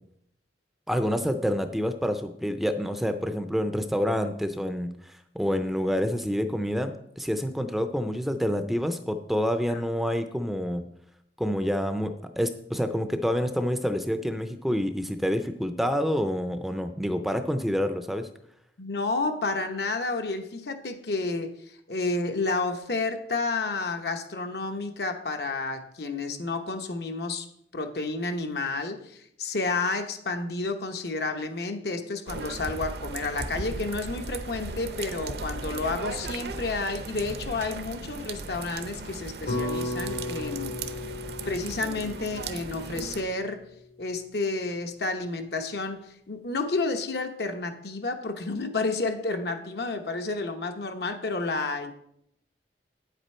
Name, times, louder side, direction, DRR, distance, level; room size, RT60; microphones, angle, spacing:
voice 1, 0.9-10.8 11.4-18.3, equal, ahead, 9 dB, 0.5 m, -28 dB
voice 2, 18.8-27.5 27.7-40.8 41.5-43.6 44.0-51.9, left 3 dB, 65° left, 6 dB, 0.9 m, -30 dB
sound 1, 32.3-43.2, right 3 dB, 65° right, 0.7 m, -37 dB
sound 2, 39.5-43.7, left 2 dB, 80° left, 2.1 m, -35 dB
9.1 x 8.1 x 4.3 m, 0.74 s
head